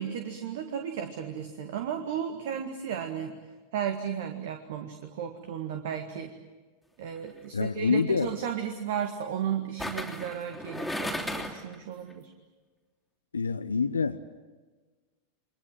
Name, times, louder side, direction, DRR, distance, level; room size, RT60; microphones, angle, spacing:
voice 1, 0.0-3.4 3.7-6.3 7.0-12.3, right 8 dB, 55° right, 6 dB, 1.8 m, -34 dB
sound 1, 7.2-7.5 9.8-11.8 12.1-12.2, left 1 dB, ahead, 3.2 m, -35 dB
voice 2, 7.5-8.3 13.3-14.2, left 5 dB, 75° left, 10 dB, 0.8 m, -26 dB
29.5 x 23.5 x 7.6 m, 1.3 s
figure-of-eight pair, 90°, 0 cm